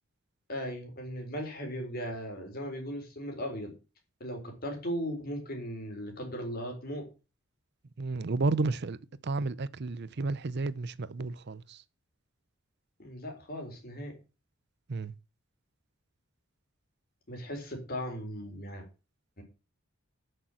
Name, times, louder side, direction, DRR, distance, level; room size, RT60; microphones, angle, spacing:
voice 1, 0.5-3.7 4.2-7.1 13.0-14.2 17.3-18.9 19.4-19.5, equal, 45° left, 4.0 m, -37 dB
voice 2, 8.0-9.0 9.2-11.8 14.9-15.1, right 3 dB, 55° right, 0.6 m, -32 dB
8.5 x 6.8 x 7.7 m
head